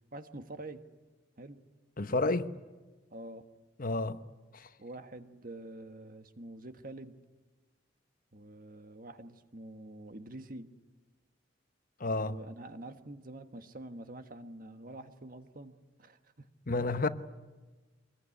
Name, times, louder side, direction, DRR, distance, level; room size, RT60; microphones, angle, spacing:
voice 1, 0.1-0.9 1.4-1.6 3.1-3.4 4.8-7.2 8.3-10.7 12.2-16.5, right 1 dB, 45° right, 1.4 m, -46 dB
voice 2, 2.0-2.5 3.8-4.2 4.5-4.7 12.0-12.4 16.7-17.1, left 2 dB, 45° left, 1.0 m, -30 dB
24.5 x 21.0 x 9.9 m
head